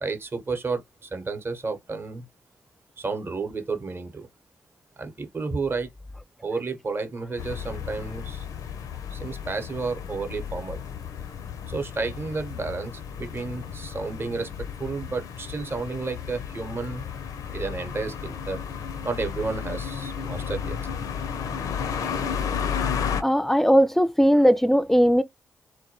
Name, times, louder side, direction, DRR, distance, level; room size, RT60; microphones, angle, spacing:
voice 1, 0.0-2.3 3.0-4.3 5.0-5.9 6.4-8.5 9.1-10.8 11.7-14.5 14.8-17.0 17.5-18.6 19.0-20.8, right 4 dB, 35° right, 0.8 m, -31 dB
sound 1, 7.4-23.2, left 7 dB, 65° left, 0.5 m, -33 dB
voice 2, 23.2-25.2, equal, 5° left, 0.3 m, -19 dB
2.2 x 2.1 x 2.8 m
hypercardioid pair, 40°, 6 cm